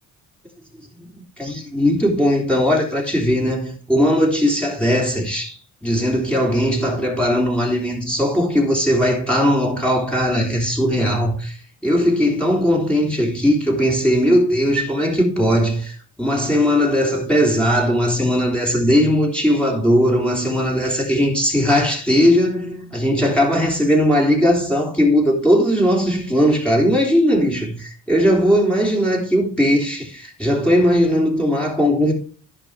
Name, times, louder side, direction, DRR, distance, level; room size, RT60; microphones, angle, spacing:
voice 1, 0.9-11.6 11.8-32.1, equal, ahead, 3.4 m, -18 dB
11.0 x 4.8 x 4.8 m
hypercardioid pair, 55°, 46 cm